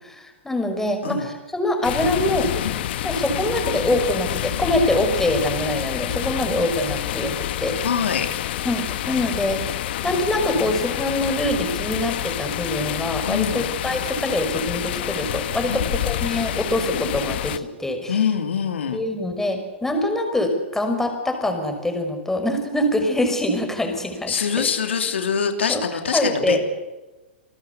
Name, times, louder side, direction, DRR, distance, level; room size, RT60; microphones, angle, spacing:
voice 1, 0.0-2.5 3.0-7.8 8.6-9.6 10.0-18.2 18.9-24.7 25.7-25.8 26.1-26.6, left 1 dB, 5° left, 5 dB, 5.8 m, -24 dB
sound 1, 1.8-17.6, left 13 dB, 60° left, 1.3 m, -28 dB
voice 2, 7.8-8.3 13.3-13.6 15.7-15.9 18.1-19.0 24.3-26.7, left 7 dB, 85° left, 5 dB, 3.2 m, -24 dB
28.5 x 19.5 x 8.4 m, 1.1 s
hypercardioid pair, 125°, 6 cm